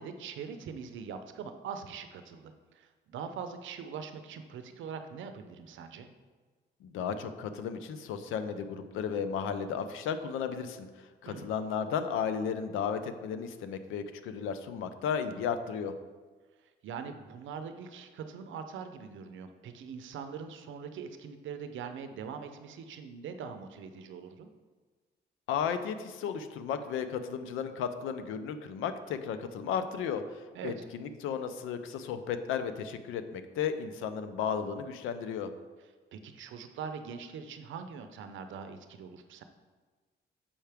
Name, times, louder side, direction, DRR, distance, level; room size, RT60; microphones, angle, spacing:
voice 1, 0.0-6.1 11.3-11.5 16.8-24.5 30.5-30.8 36.1-39.4, right 6 dB, 75° right, 8 dB, 0.6 m, -42 dB
voice 2, 6.8-15.9 25.5-35.5, left 7 dB, 90° left, 10 dB, 0.5 m, -34 dB
7.1 x 5.6 x 3.4 m, 1.4 s
cardioid pair, 90°, 20 cm